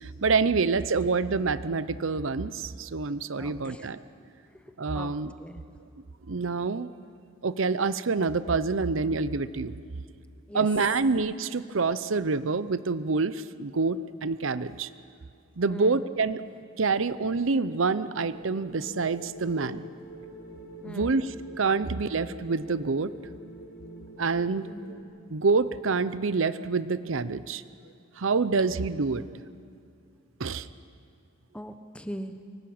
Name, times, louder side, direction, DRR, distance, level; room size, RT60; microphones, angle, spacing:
voice 1, 0.0-4.0 4.8-5.3 6.3-6.9 7.4-9.7 10.5-14.9 15.6-16.4 16.8-19.9 20.8-23.1 24.2-24.7 25.3-27.6 28.2-29.2 30.4-30.7, right 4 dB, 75° right, 14 dB, 0.7 m, -27 dB
voice 2, 3.4-3.9 4.5-4.6 4.9-5.1 5.4-5.6 10.5-10.7 15.7-16.1 20.8-21.2 24.7-25.0 31.5-32.3, equal, 5° left, 8 dB, 0.9 m, -40 dB
sound 1, 18.3-25.0, right 1 dB, 60° left, 4.2 m, -45 dB
23.5 x 18.5 x 8.7 m, 2.3 s
head